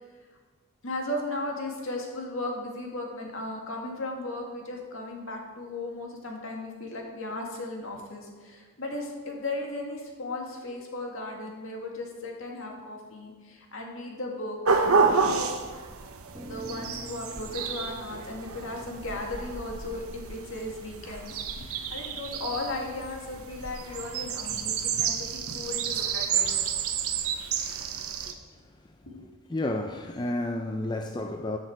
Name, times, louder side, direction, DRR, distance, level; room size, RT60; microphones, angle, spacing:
voice 1, 0.8-15.6 16.4-26.5 29.0-29.3, left 2 dB, 60° left, 2.0 m, -36 dB
sound 1, 14.6-28.3, right 5 dB, 75° right, 1.0 m, -30 dB
sound 2, 16.3-20.9, equal, 15° right, 1.3 m, -47 dB
voice 2, 28.3-29.0 29.5-31.6, left 1 dB, 20° left, 0.4 m, -32 dB
13.5 x 6.7 x 4.7 m
head